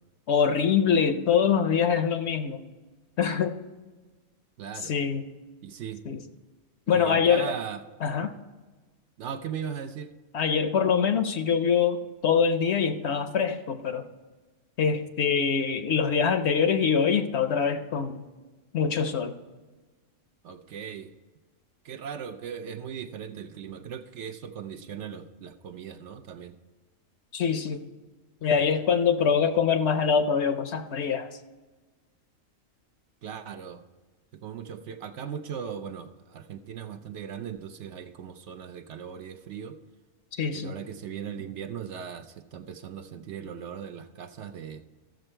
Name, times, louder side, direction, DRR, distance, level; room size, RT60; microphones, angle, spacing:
voice 1, 0.3-2.6 3.2-3.6 4.8-5.3 6.1-6.2 6.9-7.5 8.0-8.3 10.3-14.0 14.8-18.2 18.7-19.4 27.3-27.8 28.4-31.3 40.3-40.7, left 6 dB, 60° left, 9 dB, 0.8 m, -24 dB
voice 2, 4.6-4.9 5.6-6.0 6.9-7.8 9.2-10.1 20.4-21.1 21.8-26.5 33.2-33.8 34.4-39.7 40.5-44.8, right 7 dB, 65° right, 8 dB, 0.8 m, -38 dB
14.0 x 6.9 x 4.4 m, 1.3 s
omnidirectional pair, 1.4 m